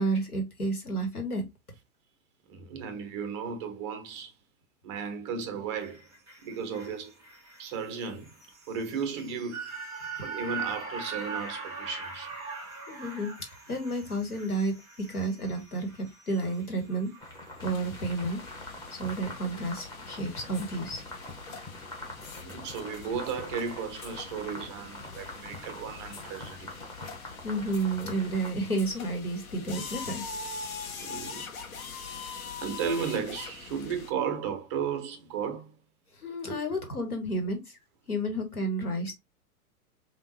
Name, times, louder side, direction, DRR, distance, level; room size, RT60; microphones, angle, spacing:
voice 1, 0.0-1.4 12.9-13.3 13.7-14.8 15.1-17.1 17.6-18.4 18.9-21.0 27.4-30.3 36.2-37.8 38.1-39.1, right 2 dB, 90° left, 1.2 m, -31 dB
voice 2, 2.5-4.3 4.8-6.1 6.4-7.1 7.6-8.3 8.7-9.7 10.2-12.3 22.3-26.8 31.0-31.5 32.6-35.7 36.5-36.6, right 6 dB, 20° right, 0.4 m, -35 dB
sound 1, 5.8-18.1 18.5-18.6, right 5 dB, 5° right, 1.3 m, -42 dB
sound 2, 17.2-28.5, left 1 dB, 10° left, 0.8 m, -44 dB
sound 3, 17.6-34.1, left 5 dB, 70° left, 0.8 m, -43 dB
3.5 x 2.2 x 2.8 m
figure-of-eight pair, 105°, 44 cm